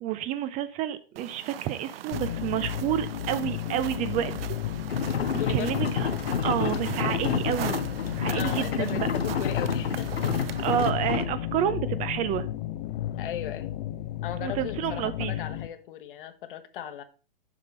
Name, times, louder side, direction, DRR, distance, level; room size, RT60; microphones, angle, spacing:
voice 1, 0.0-4.5 5.3-6.1 6.4-7.8 8.1-9.0 10.6-12.5 14.4-15.3, right 11 dB, 25° right, 0.5 m, -29 dB
sound 1, 1.2-10.9, right 12 dB, 70° right, 0.5 m, -41 dB
sound 2, 2.1-15.7, left 12 dB, 45° left, 0.6 m, -33 dB
sound 3, 4.9-11.3, left 6 dB, 90° left, 0.9 m, -29 dB
voice 2, 5.4-5.8 8.2-10.2 13.2-13.8 14.2-17.0, left 10 dB, 60° left, 1.2 m, -37 dB
7.4 x 5.1 x 5.4 m
hypercardioid pair, 125°, 30 cm